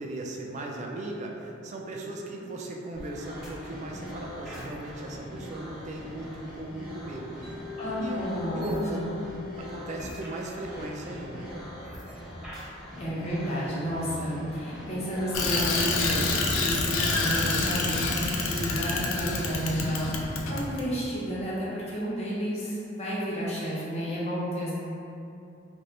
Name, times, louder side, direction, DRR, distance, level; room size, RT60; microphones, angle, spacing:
voice 1, 0.0-7.4 8.0-9.0 9.3-11.5, right 2 dB, 35° right, 0 dB, 0.3 m, -37 dB
sound 1, 2.9-17.7, equal, 5° right, 1.0 m, -42 dB
Mallet percussion, 7.4-11.5, left 11 dB, 60° right, 1.2 m, -43 dB
voice 2, 7.8-9.2 13.0-24.7, equal, 35° left, -8 dB, 0.7 m, -31 dB
Bicycle, 15.3-20.8, left 3 dB, 90° left, 0.4 m, -28 dB
3.3 x 2.6 x 2.7 m, 2.7 s
head